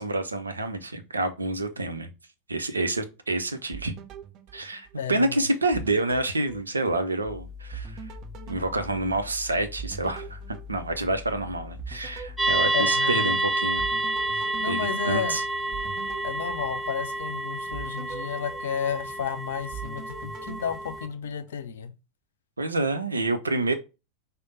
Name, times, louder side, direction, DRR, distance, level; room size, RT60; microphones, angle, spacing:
voice 1, 0.0-2.1 2.5-3.9 4.5-8.0 8.5-13.8 14.7-15.4 22.6-23.7, right 2 dB, 75° right, 0.6 m, -28 dB
sound 1, 3.7-5.3 5.7-7.3 7.7-11.4 11.8-13.4 13.8-17.3 17.7-19.3 19.7-21.7, right 8 dB, 35° right, 0.8 m, -43 dB
voice 2, 5.0-5.4 12.7-13.4 14.3-15.4 16.2-21.9, left 8 dB, 60° left, 0.5 m, -32 dB
sound 2, 7.2-12.6, left 6 dB, 10° left, 0.8 m, -43 dB
sound 3, 12.4-21.1, right 2 dB, 10° right, 1.1 m, -29 dB
5.0 x 2.1 x 3.8 m
figure-of-eight pair, 90°, 0 cm